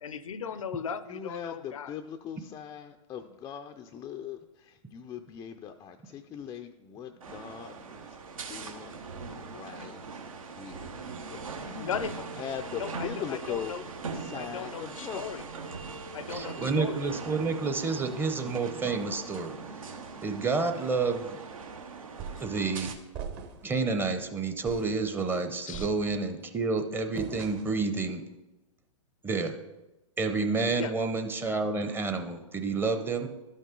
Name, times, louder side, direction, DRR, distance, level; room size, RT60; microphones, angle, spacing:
voice 1, 0.0-2.0 11.8-12.2 12.8-13.8 14.4-15.5 16.1-17.1 25.7-25.9 30.8-30.9, left 7 dB, 75° left, 15 dB, 0.5 m, -37 dB
voice 2, 1.1-8.2 8.5-9.0 9.4-10.2 10.6-10.9 11.3-12.0 12.4-13.9 14.1-15.3 18.4-18.5, left 8 dB, 20° left, 5 dB, 0.4 m, -40 dB
sound 1, 7.2-22.9, right 4 dB, 75° right, 1.1 m, -41 dB
voice 3, 16.3-19.6 20.2-21.4 22.4-23.0 23.6-28.2 29.2-29.6 30.2-33.3, right 4 dB, 10° right, 6 dB, 0.7 m, -29 dB
sound 2, 22.2-22.6 23.1-23.7 24.1-24.3 24.7-25.0 25.7-26.4 27.2-27.9, right 6 dB, 40° right, 1.1 m, -41 dB
11.5 x 5.4 x 3.8 m, 1.0 s
hypercardioid pair, 115°, 17 cm